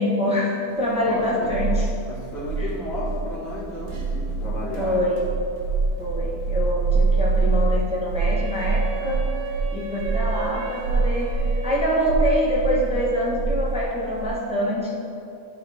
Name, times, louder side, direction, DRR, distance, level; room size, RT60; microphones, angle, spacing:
voice 1, 0.0-1.9 4.8-5.3 6.0-9.3 9.7-14.9, equal, 5° right, -5 dB, 0.5 m, -25 dB
sound 1, 0.8-14.3, right 4 dB, 55° right, 1.0 m, -25 dB
voice 2, 1.1-1.5 2.1-5.0, left 2 dB, 60° left, -9 dB, 2.3 m, -32 dB
Wind instrument woodwind instrument, 8.2-12.3, right 4 dB, 80° right, 1.4 m, -35 dB
11.0 x 4.9 x 3.4 m, 2.8 s
omnidirectional pair, 2.2 m